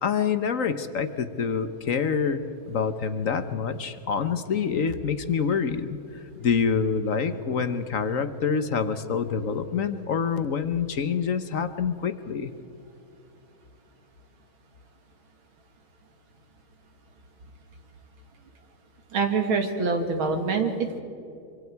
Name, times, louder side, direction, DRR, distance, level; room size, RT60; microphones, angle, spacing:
voice 1, 0.0-12.5, left 6 dB, 50° left, 10 dB, 1.1 m, -26 dB
voice 2, 19.1-21.0, right 4 dB, 80° right, 5 dB, 2.8 m, -25 dB
25.5 x 25.0 x 4.7 m, 2.7 s
omnidirectional pair, 2.2 m